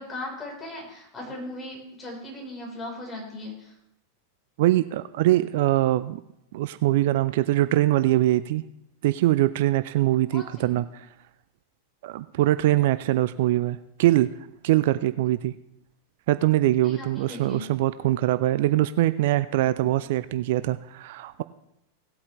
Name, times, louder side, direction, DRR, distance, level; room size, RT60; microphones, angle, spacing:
voice 1, 0.0-3.7 10.3-10.9 16.8-17.7 19.8-19.9, left 1 dB, 20° left, -1 dB, 3.7 m, -38 dB
voice 2, 4.6-6.2 6.5-8.6 9.0-11.1 12.0-14.3 14.6-15.5 16.3-21.4, right 15 dB, 50° right, 14 dB, 0.3 m, -23 dB
17.5 x 8.5 x 3.1 m, 0.80 s
figure-of-eight pair, 90°, 0 cm